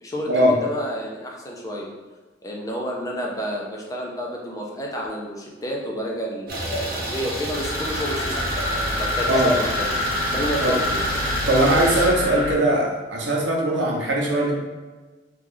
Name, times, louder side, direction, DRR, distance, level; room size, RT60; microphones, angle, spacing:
voice 1, 0.0-1.9 2.4-11.0, equal, 20° left, -2 dB, 0.5 m, -30 dB
Idling, 6.5-12.1, right 1 dB, 55° right, 0.8 m, -30 dB
sound 1, 7.5-12.5, left 1 dB, 65° left, 1.1 m, -26 dB
voice 2, 9.3-9.6 10.6-10.7 11.5-14.5, right 1 dB, 85° right, -2 dB, 0.8 m, -20 dB
3.1 x 2.4 x 3.7 m, 1.3 s
head